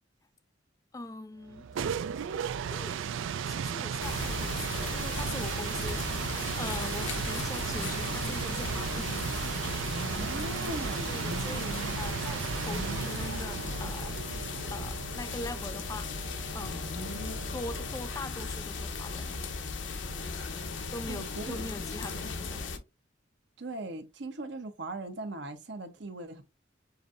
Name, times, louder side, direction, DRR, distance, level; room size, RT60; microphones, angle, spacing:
voice 1, 0.9-1.7 2.7-3.1 3.5-9.3 10.7-14.2 14.7-16.9 17.5-19.4 20.9-22.8, left 2 dB, 15° left, 0.3 m, -42 dB
sound 1, 1.5-18.2, right 7 dB, 80° right, 0.3 m, -35 dB
sound 2, 4.0-22.8, left 4 dB, 75° left, 0.8 m, -37 dB
voice 2, 10.1-11.6 21.1-21.6 23.6-26.4, right 2 dB, 65° right, 0.9 m, -39 dB
6.8 x 2.6 x 2.5 m
head